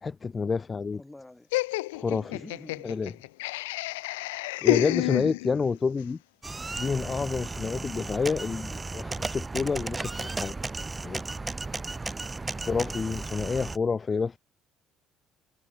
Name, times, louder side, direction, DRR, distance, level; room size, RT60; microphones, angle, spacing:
voice 1, 0.0-1.0 1.9-2.4 2.8-3.1 4.6-6.2 6.8-10.5 11.0-11.2 12.7-14.4, left 5 dB, 30° left, 0.3 m, -29 dB
voice 2, 0.9-1.5 2.3-2.9 5.0-5.2 12.3-12.7, left 2 dB, 10° left, 7.9 m, -48 dB
Laughter, 1.5-5.8, left 21 dB, 90° left, 0.6 m, -30 dB
sound 1, 6.4-13.8, right 3 dB, 20° right, 0.5 m, -35 dB
supercardioid pair, 70°, 0 cm